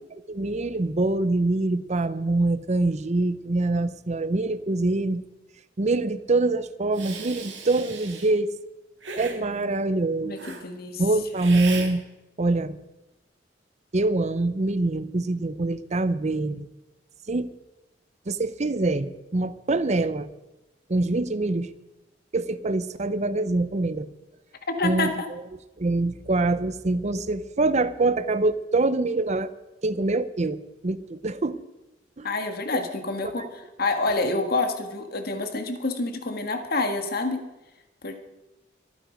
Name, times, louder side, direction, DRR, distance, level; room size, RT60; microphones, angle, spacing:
voice 1, 0.3-5.2 5.8-8.5 9.2-10.4 11.0-12.0 12.4-12.8 13.9-16.7 17.3-17.5 18.3-20.3 20.9-21.7 22.3-24.1 24.8-25.1 25.8-29.5 29.8-31.6 32.2-32.3 33.4-33.5, right 2 dB, 40° right, 14 dB, 0.7 m, -24 dB
Hiss, 6.9-8.3 9.0-9.4 10.4-10.6 11.3-11.9, right 5 dB, 80° right, 2.4 m, -37 dB
voice 2, 10.2-11.0 24.7-25.3 32.2-37.4 38.0-38.2, left 3 dB, 55° left, 6 dB, 1.7 m, -28 dB
23.5 x 9.3 x 5.2 m, 1.0 s
head